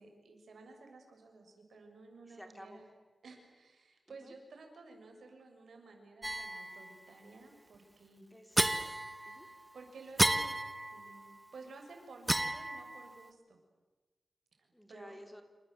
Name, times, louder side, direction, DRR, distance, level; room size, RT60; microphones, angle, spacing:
voice 1, 0.0-2.9 3.2-8.3 9.1-9.3 9.7-10.6 10.9-13.6 14.6-15.2, right 3 dB, 80° right, 3 dB, 6.6 m, -54 dB
voice 2, 2.2-2.8 4.1-4.3 8.3-8.9 9.3-9.5 14.7-15.4, equal, 5° left, 6 dB, 3.4 m, -53 dB
sound 1, 6.2-6.9 8.6-9.6 10.2-11.3 12.3-13.2, right 1 dB, 15° right, 1.2 m, -33 dB
28.0 x 27.0 x 8.0 m, 1.2 s
wide cardioid pair, 75°, 0 cm